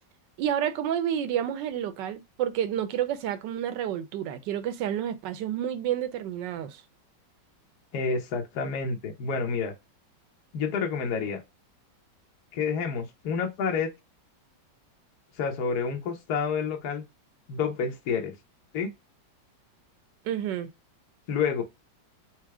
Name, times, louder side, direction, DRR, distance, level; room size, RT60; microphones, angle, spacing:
voice 1, 0.4-6.8 20.2-20.7, right 10 dB, 75° right, 1.3 m, -30 dB
voice 2, 7.9-9.7 10.5-11.4 12.5-13.9 15.4-17.0 17.5-18.3 18.7-18.9 21.3-21.6, left 5 dB, 60° left, 1.4 m, -29 dB
4.4 x 2.2 x 4.6 m
omnidirectional pair, 2.0 m